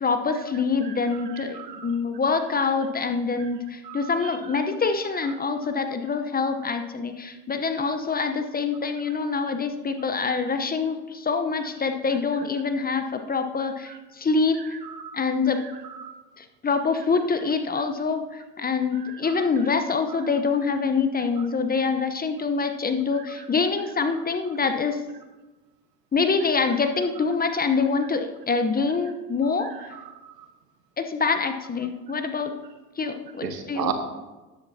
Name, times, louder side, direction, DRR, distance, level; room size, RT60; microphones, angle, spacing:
voice 1, 0.0-14.6 15.1-15.6 16.4-25.0 26.1-29.9 31.0-32.5 33.0-33.9, left 4 dB, 20° left, 8 dB, 0.9 m, -25 dB
voice 2, 0.8-1.9 3.8-4.1 13.9-14.0 14.8-15.2 15.8-16.1 19.0-19.4 29.6-30.3 33.4-33.9, right 9 dB, 90° right, 7 dB, 1.3 m, -36 dB
13.0 x 10.5 x 2.8 m, 1.1 s
hypercardioid pair, 80°, 48 cm